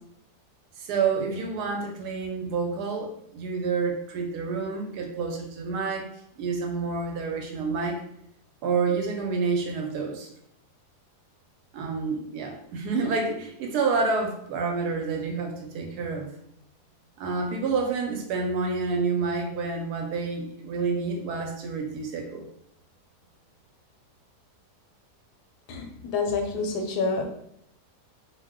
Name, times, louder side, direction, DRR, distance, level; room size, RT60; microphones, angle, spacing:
voice 1, 0.8-6.1 6.4-8.0 8.6-10.3 11.7-16.3 17.2-22.5, right 4 dB, 75° right, 2 dB, 1.1 m, -28 dB
voice 2, 25.7-27.2, left 4 dB, 80° left, 3 dB, 1.1 m, -28 dB
2.7 x 2.1 x 3.5 m, 0.73 s
omnidirectional pair, 1.8 m